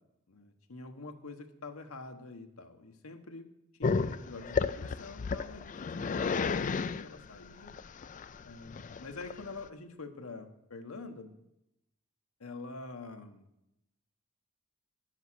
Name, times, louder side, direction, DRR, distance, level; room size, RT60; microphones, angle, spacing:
voice 1, 0.3-3.5 3.8-7.7 8.4-11.3 12.4-13.5, left 3 dB, 75° left, 6 dB, 1.3 m, -46 dB
Growling, 3.8-9.7, left 5 dB, 35° left, 0.4 m, -33 dB
11.0 x 8.1 x 6.3 m, 0.85 s
head